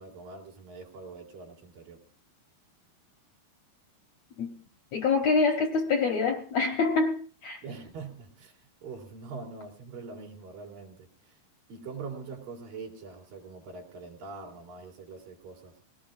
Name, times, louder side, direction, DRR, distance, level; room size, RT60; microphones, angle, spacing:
voice 1, 0.0-2.0 7.6-11.4 11.7-15.7, right 4 dB, 65° right, 0 dB, 4.0 m, -43 dB
voice 2, 4.9-7.6, left 4 dB, 65° left, 3 dB, 1.7 m, -26 dB
21.0 x 18.5 x 2.5 m, 0.42 s
omnidirectional pair, 4.4 m